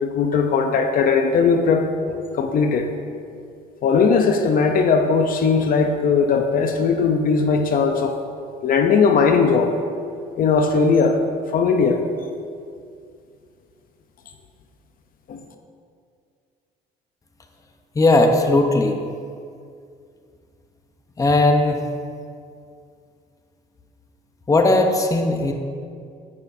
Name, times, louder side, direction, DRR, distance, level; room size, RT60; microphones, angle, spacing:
voice 1, 0.0-1.9 2.3-2.9 3.8-8.2 8.6-9.8 10.4-11.2 11.5-12.0 15.3-15.4, left 5 dB, 55° left, 5 dB, 0.7 m, -18 dB
voice 2, 18.0-18.9 21.2-21.8 24.5-25.5, left 2 dB, 20° left, 4 dB, 0.8 m, -17 dB
9.5 x 9.5 x 2.7 m, 2.3 s
cardioid pair, 110°, 17 cm